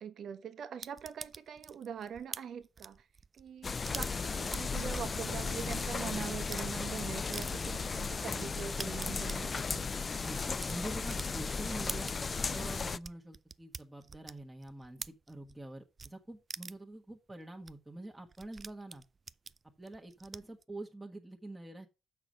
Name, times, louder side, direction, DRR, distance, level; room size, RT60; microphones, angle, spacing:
voice 1, 0.0-3.1 3.3-9.9, right 8 dB, 65° right, 1.2 m, -43 dB
sound 1, 0.8-5.8 6.3-6.7 7.3-7.5 7.9-8.0 8.3-15.6 16.0-16.1 16.5-16.9 17.3-17.4 17.7-17.8 18.0-20.6, right 4 dB, 35° right, 0.4 m, -46 dB
sound 2, 3.6-13.0, left 4 dB, 35° left, 0.4 m, -35 dB
voice 2, 10.2-12.1 12.5-19.0 19.8-21.9, right 1 dB, 10° right, 1.4 m, -46 dB
7.0 x 5.9 x 6.5 m
cardioid pair, 90°, 0 cm